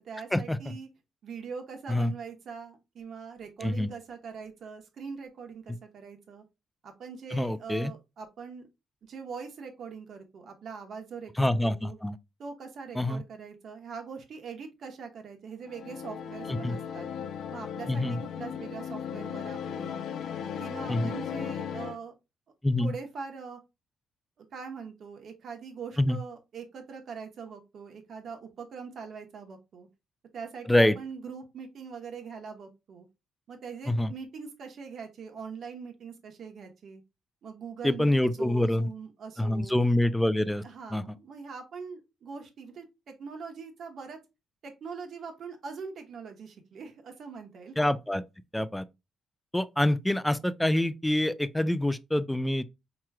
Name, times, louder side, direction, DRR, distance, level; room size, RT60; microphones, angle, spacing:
voice 1, 0.0-0.9 1.2-6.4 6.8-8.7 9.0-12.0 12.4-17.1 17.5-20.0 20.6-22.1 22.8-23.6 24.4-29.9 30.3-33.0 33.5-37.0 37.4-39.7 40.6-44.2 44.6-47.8, right 5 dB, 60° right, 1.0 m, -42 dB
voice 2, 7.3-7.9 11.4-12.2 13.0-13.2 16.5-16.8 17.9-18.2 20.9-21.1 22.6-22.9 26.0-26.2 30.7-31.0 33.9-34.1 37.8-38.9 39.4-40.6 40.9-41.0 47.8-48.2 48.5-48.8 49.5-52.6, left 1 dB, 5° left, 0.3 m, -26 dB
sound 1, 15.6-22.0, left 8 dB, 70° left, 0.4 m, -36 dB
4.6 x 3.0 x 2.3 m
cardioid pair, 90°, 0 cm